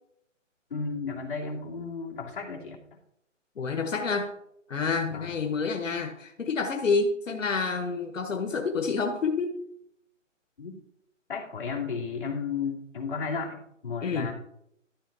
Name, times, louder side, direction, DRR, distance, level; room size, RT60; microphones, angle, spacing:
voice 1, 0.7-2.8 5.1-5.3 10.6-10.8 11.3-14.3, left 5 dB, 45° left, -3 dB, 2.5 m, -33 dB
voice 2, 3.6-4.3 4.7-9.5 14.0-14.3, left 4 dB, 80° left, 5 dB, 1.2 m, -28 dB
13.0 x 6.1 x 4.0 m, 0.75 s
hypercardioid pair, 175°, 38 cm